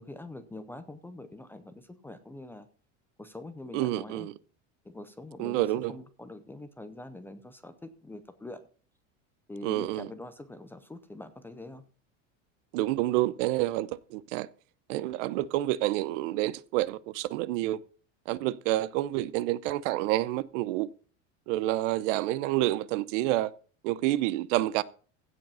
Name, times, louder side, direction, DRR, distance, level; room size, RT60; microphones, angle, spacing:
voice 1, 0.0-2.7 3.2-4.3 4.8-8.6 9.5-11.8, left 2 dB, 5° left, 0.5 m, -44 dB
voice 2, 3.7-4.3 5.4-5.9 9.6-10.1 12.7-14.5 14.9-17.8 18.3-20.9 21.5-23.5 23.8-24.8, right 16 dB, 75° right, 0.8 m, -28 dB
16.0 x 5.3 x 5.5 m
cardioid pair, 165°, 38 cm